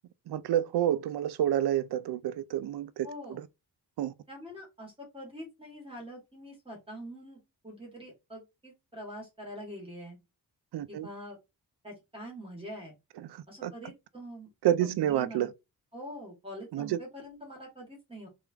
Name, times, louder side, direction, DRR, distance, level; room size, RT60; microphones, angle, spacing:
voice 1, 0.3-3.5 4.0-4.1 10.7-11.1 13.2-13.7 14.6-15.5 16.7-17.0, right 11 dB, 90° right, 0.5 m, -29 dB
voice 2, 3.0-3.4 4.3-10.2 10.9-11.4 11.8-12.9 13.5-14.5 14.8-15.5 15.9-18.3, equal, 15° right, 2.0 m, -44 dB
3.6 x 3.5 x 3.5 m
wide cardioid pair, 120°, 38 cm